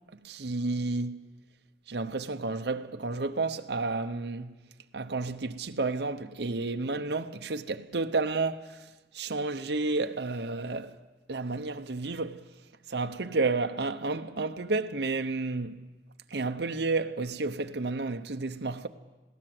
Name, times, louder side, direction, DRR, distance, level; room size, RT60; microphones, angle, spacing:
voice 1, 0.2-1.3 1.9-4.6 4.9-8.8 9.1-10.9 11.3-12.4 12.9-15.8 16.3-18.9, right 3 dB, 70° right, 0.8 m, -31 dB
21.0 x 17.0 x 7.7 m
head